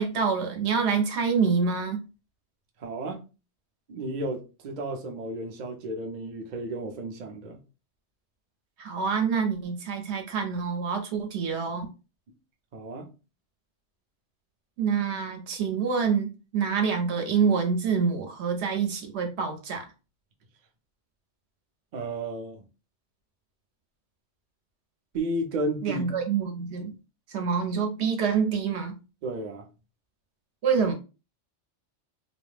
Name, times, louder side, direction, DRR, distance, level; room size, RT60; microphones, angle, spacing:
voice 1, 0.0-2.0 8.8-11.9 14.8-19.8 25.8-26.9 27.3-29.0 30.6-30.9, right 6 dB, 70° right, 0.9 m, -26 dB
voice 2, 2.8-3.2 3.9-7.6 12.7-13.1 21.9-22.7 25.1-26.1 29.2-29.7, right 1 dB, 55° right, 0.5 m, -33 dB
2.3 x 2.0 x 3.1 m
omnidirectional pair, 1.2 m